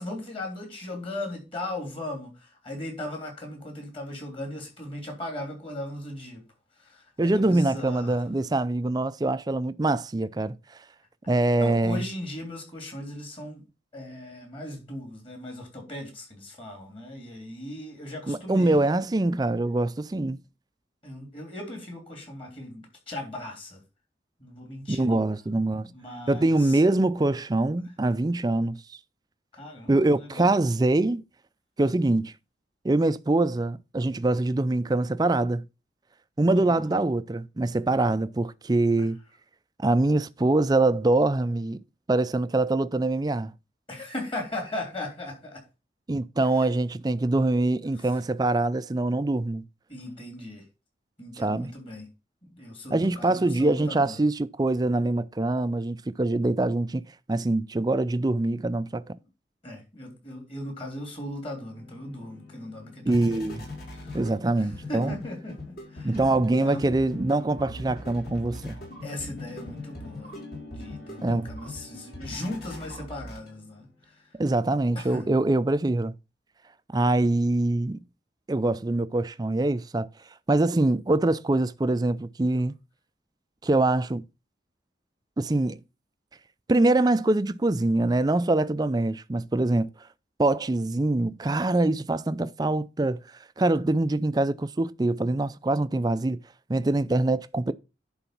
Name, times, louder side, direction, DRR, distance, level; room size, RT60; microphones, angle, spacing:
voice 1, 0.0-6.4 6.7-8.2 11.2-11.3 11.6-13.7 13.9-18.8 21.0-23.8 24.4-25.3 25.8-26.8 29.5-30.5 36.5-36.8 39.0-39.1 43.9-45.6 46.4-46.8 47.9-48.2 49.9-50.6 51.2-52.1 52.4-54.2 58.7-58.8 59.6-63.4 63.9-64.2 64.5-66.3 66.6-66.9 69.0-70.3 70.7-74.3 74.9-75.3, left 1 dB, 30° left, 3.3 m, -38 dB
voice 2, 7.2-10.6 11.3-12.0 18.3-20.4 24.9-25.9 26.3-28.8 29.9-31.2 31.8-32.3 32.8-35.7 36.4-39.2 39.8-41.8 42.1-43.5 46.1-49.6 51.4-51.7 52.9-59.1 63.1-63.7 64.1-65.1 66.0-68.8 71.2-71.5 74.4-76.1 76.9-78.0 78.5-80.1 80.5-82.7 83.6-84.2 85.4-85.8 86.7-89.9 90.4-93.2 93.6-96.4 96.7-97.7, right 2 dB, 20° right, 0.4 m, -24 dB
sound 1, 61.1-73.8, left 2 dB, 55° left, 4.6 m, -41 dB
11.0 x 4.0 x 5.9 m
head